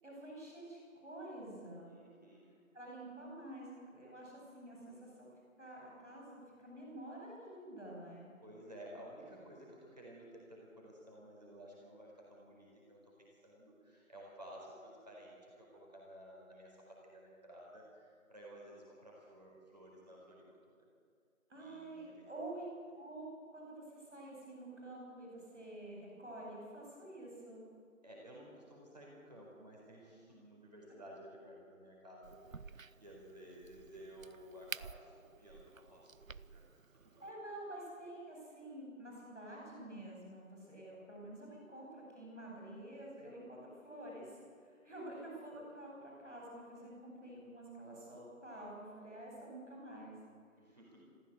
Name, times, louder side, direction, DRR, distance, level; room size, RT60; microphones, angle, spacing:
voice 1, 0.0-1.9 2.7-5.3 5.6-8.3 21.5-22.7 22.9-27.6 37.2-50.2 50.7-50.8, right 1 dB, 5° right, -20 dB, 4.7 m, -49 dB
voice 2, 1.9-2.6 8.4-20.9 21.6-22.3 28.0-37.2 41.4-41.5 50.6-51.1, equal, 30° right, -4 dB, 4.5 m, -55 dB
Crack, 32.2-37.3, right 5 dB, 70° right, 0.7 m, -51 dB
22.0 x 15.0 x 8.0 m, 2.2 s
figure-of-eight pair, 175°, 42 cm